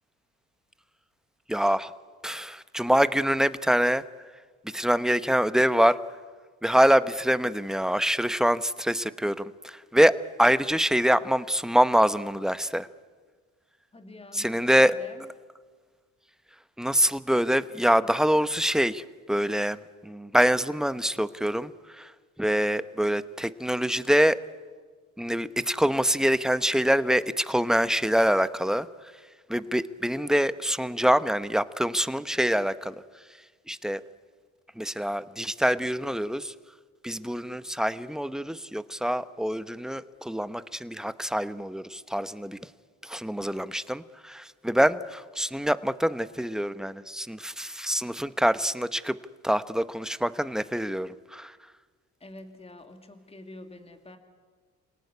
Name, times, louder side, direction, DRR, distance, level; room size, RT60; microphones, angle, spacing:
voice 1, 1.5-1.9 2.2-4.0 4.7-6.0 6.6-12.9 14.4-14.9 16.8-19.8 20.0-21.7 22.0-22.1 22.4-24.4 25.2-28.9 29.5-32.9 33.7-34.0 34.8-36.5 37.0-42.6 43.0-49.2 49.4-51.5, equal, ahead, 13 dB, 0.9 m, -25 dB
voice 2, 13.9-15.3 52.2-54.2, left 2 dB, 20° left, 6 dB, 2.6 m, -46 dB
27.0 x 18.0 x 9.7 m, 1.5 s
cardioid pair, 90°, 30 cm